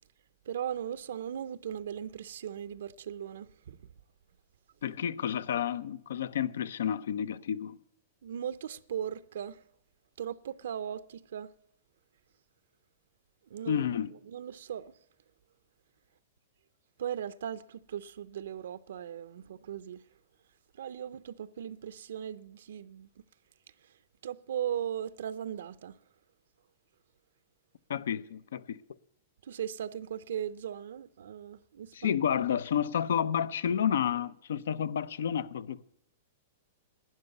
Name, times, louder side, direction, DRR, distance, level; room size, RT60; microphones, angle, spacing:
voice 1, 0.5-3.8 8.2-9.6 10.2-11.5 13.5-13.8 14.3-14.9 17.0-20.0 20.8-23.1 24.2-26.0 29.4-32.2, right 9 dB, 75° right, 0.5 m, -38 dB
voice 2, 4.8-7.8 13.7-14.1 27.9-28.8 31.9-35.9, left 8 dB, 80° left, 0.6 m, -30 dB
12.0 x 9.7 x 8.0 m
supercardioid pair, 165°, 0 cm